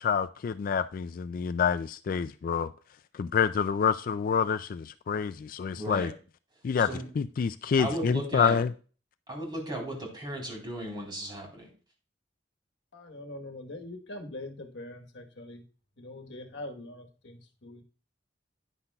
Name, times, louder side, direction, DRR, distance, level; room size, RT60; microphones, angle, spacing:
voice 1, 0.0-2.7 3.1-6.1 6.6-6.9 7.2-8.7, left 6 dB, 50° left, 0.3 m, -27 dB
voice 2, 5.8-6.1 6.9-7.1 7.8-8.6 9.3-11.7, right 1 dB, 25° right, 3.8 m, -35 dB
voice 3, 12.9-15.6 16.0-17.8, left 1 dB, 70° left, 1.3 m, -43 dB
10.0 x 9.6 x 2.3 m
head